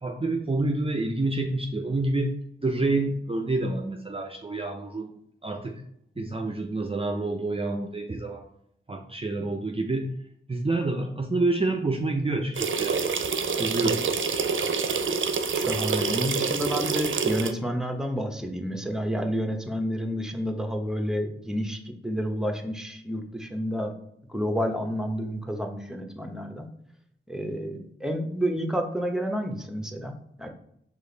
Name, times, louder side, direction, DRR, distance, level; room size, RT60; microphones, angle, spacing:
voice 1, 0.0-5.1 5.4-5.8 6.2-8.5 8.9-10.1 10.5-13.0 13.6-14.0, right 2 dB, 25° right, 4 dB, 0.6 m, -28 dB
sound 1, 12.5-17.5, right 5 dB, 70° right, 0.5 m, -27 dB
voice 2, 15.5-23.9 24.3-26.7 27.3-30.5, equal, 5° right, 4 dB, 0.8 m, -30 dB
5.0 x 2.5 x 3.9 m, 0.73 s
cardioid pair, 45°, 21 cm